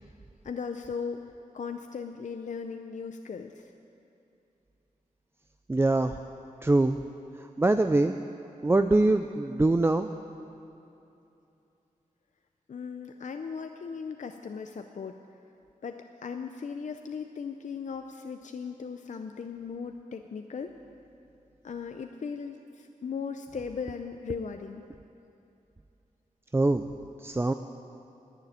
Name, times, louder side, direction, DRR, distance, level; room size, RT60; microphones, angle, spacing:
voice 1, 0.4-1.2 1.5-3.6 12.7-15.1 15.8-20.7 21.6-24.8, left 5 dB, 60° left, 6 dB, 0.5 m, -37 dB
voice 2, 5.7-6.1 6.6-7.0 7.6-8.2 8.6-10.1 26.5-26.8 27.2-27.5, right 2 dB, 15° right, 8 dB, 0.3 m, -23 dB
11.0 x 9.9 x 9.2 m, 2.8 s
wide cardioid pair, 110°, 14 cm